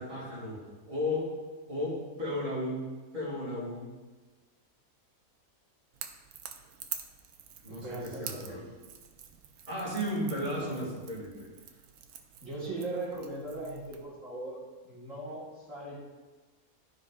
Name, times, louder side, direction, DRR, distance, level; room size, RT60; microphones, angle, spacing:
voice 1, 0.0-1.3 1.7-3.9 7.6-8.6 9.7-11.5, left 1 dB, 30° right, -6 dB, 2.7 m, -34 dB
Crackle / Crack, 5.9-14.1, right 8 dB, 90° right, 1.2 m, -47 dB
voice 2, 7.7-8.7 10.5-10.9 12.4-16.0, right 2 dB, 65° right, -8 dB, 2.3 m, -39 dB
12.5 x 5.5 x 2.5 m, 1.3 s
omnidirectional pair, 1.5 m